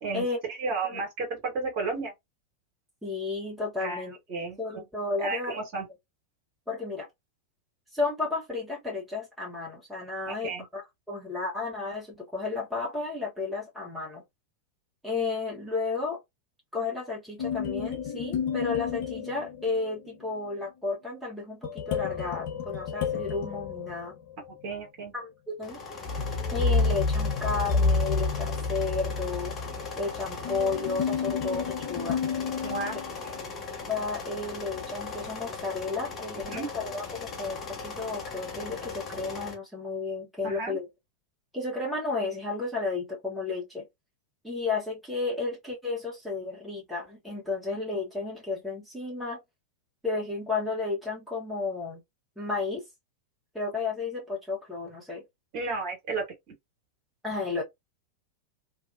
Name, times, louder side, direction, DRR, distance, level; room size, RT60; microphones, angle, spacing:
voice 1, 0.6-2.1 3.8-4.0 4.3-4.8 5.2-5.8 10.2-10.6 24.6-25.1 32.6-33.4 36.5-36.7 40.4-40.8 55.5-56.2, right 3 dB, 45° right, 1.5 m, -33 dB
voice 2, 3.0-4.1 4.6-5.6 6.7-7.1 7.9-14.2 15.0-16.2 16.7-24.1 25.1-25.8 26.5-29.5 30.0-32.2 33.9-40.9 41.5-43.9 44.4-49.4 50.0-52.0 52.4-52.8 53.5-55.2 57.2-57.6, left 3 dB, ahead, 1.3 m, -32 dB
sound 1, 17.4-20.0 21.6-24.6 26.0-33.4, left 4 dB, 50° left, 0.6 m, -30 dB
sound 2, 25.6-39.5, left 4 dB, 25° left, 0.9 m, -38 dB
2.7 x 2.2 x 2.6 m
figure-of-eight pair, 90°, 0 cm